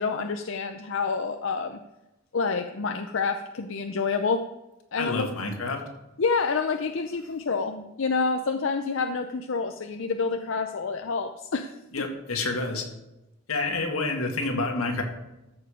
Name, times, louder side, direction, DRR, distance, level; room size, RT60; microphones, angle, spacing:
voice 1, 0.0-1.8 2.3-4.4 4.9-5.3 6.2-12.1, left 4 dB, 65° left, 7 dB, 0.5 m, -28 dB
voice 2, 5.0-5.8 11.9-12.8 13.5-15.0, left 3 dB, 85° left, 3 dB, 2.0 m, -28 dB
14.0 x 6.8 x 5.1 m, 0.95 s
head